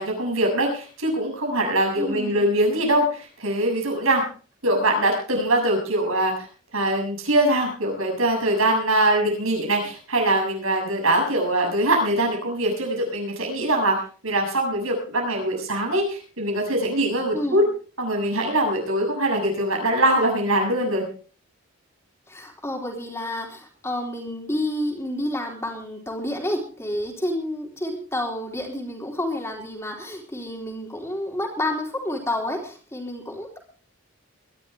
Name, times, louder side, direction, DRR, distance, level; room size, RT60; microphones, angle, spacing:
voice 1, 0.0-4.2 4.6-6.5 6.7-17.7 18.0-21.1, right 1 dB, 75° right, 1 dB, 7.2 m, -22 dB
voice 2, 2.0-2.5 17.3-17.6 22.3-33.6, left 1 dB, 10° left, 0 dB, 3.8 m, -29 dB
22.5 x 12.0 x 3.5 m, 0.38 s
head